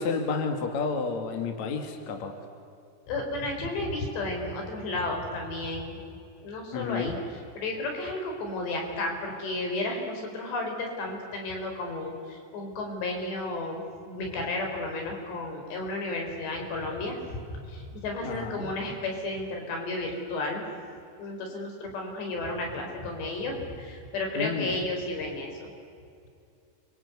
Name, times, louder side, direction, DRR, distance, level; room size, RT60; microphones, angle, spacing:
voice 1, 0.0-2.4 6.7-7.2 18.2-18.7 24.4-24.8, left 4 dB, 50° left, 5 dB, 3.0 m, -31 dB
voice 2, 3.1-6.0 6.4-7.2 7.6-20.6 21.2-25.7, left 2 dB, 75° left, 2 dB, 6.8 m, -33 dB
29.5 x 24.5 x 8.2 m, 2.4 s
omnidirectional pair, 4.9 m